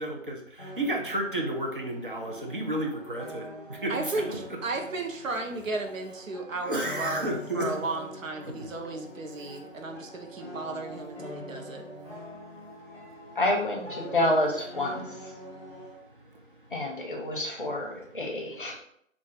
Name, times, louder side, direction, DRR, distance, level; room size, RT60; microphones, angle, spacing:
voice 1, 0.0-4.4 6.6-7.7 8.5-8.7, right 1 dB, 45° right, 1 dB, 0.5 m, -32 dB
sound 1, 0.6-16.0, equal, 25° right, 1.2 m, -44 dB
voice 2, 3.9-7.2 7.5-11.8, right 3 dB, 80° right, 4 dB, 0.7 m, -34 dB
voice 3, 13.4-15.3 16.7-18.8, left 1 dB, 40° left, 0 dB, 0.6 m, -28 dB
2.4 x 2.3 x 3.9 m, 0.70 s
figure-of-eight pair, 165°, 39 cm